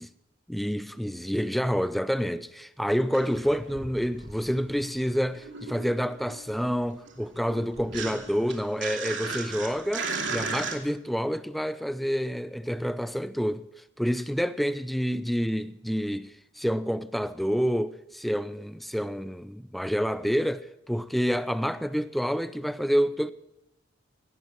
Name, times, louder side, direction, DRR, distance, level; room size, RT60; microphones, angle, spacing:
voice 1, 0.5-13.6 14.0-23.3, equal, ahead, 0.5 m, -28 dB
sound 1, 2.9-4.9 5.1-10.8, right 4 dB, 70° right, 2.7 m, -36 dB
19.0 x 16.5 x 3.1 m
head